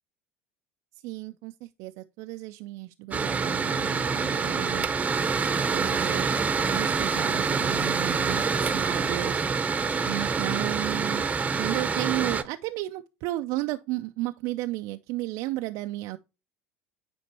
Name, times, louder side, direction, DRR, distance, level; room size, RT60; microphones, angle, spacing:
voice 1, 1.0-4.9 5.7-6.3 6.7-9.5 10.0-11.3 11.6-16.2, right 17 dB, 65° right, 0.4 m, -33 dB
Mechanical fan, 3.1-12.4, right 5 dB, 25° right, 0.8 m, -26 dB
9.3 x 4.3 x 2.9 m
hypercardioid pair, 75°, 6 cm